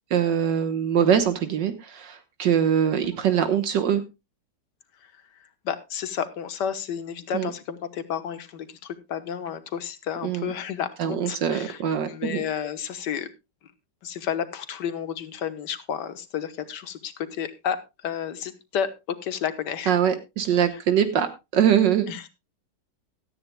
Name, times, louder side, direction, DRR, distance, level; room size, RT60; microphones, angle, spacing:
voice 1, 0.1-4.0 7.3-7.5 10.2-10.5 11.0-12.4 19.9-21.3 21.5-22.1, right 9 dB, 75° right, 9 dB, 1.8 m, -23 dB
voice 2, 5.7-11.8 12.1-13.3 14.0-19.9 22.1-22.2, left 8 dB, 65° left, 11 dB, 1.7 m, -31 dB
17.5 x 13.0 x 2.2 m, 0.25 s
omnidirectional pair, 2.0 m